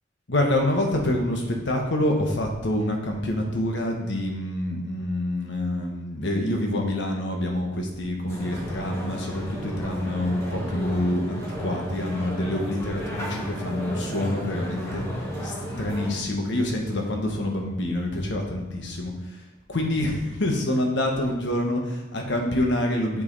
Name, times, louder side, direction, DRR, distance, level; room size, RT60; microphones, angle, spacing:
voice 1, 0.3-15.0 15.4-19.4 19.7-23.2, left 1 dB, 65° left, 1 dB, 1.2 m, -26 dB
sound 1, 8.3-16.1, equal, 15° left, 1.9 m, -33 dB
6.6 x 6.0 x 4.1 m, 1.1 s
head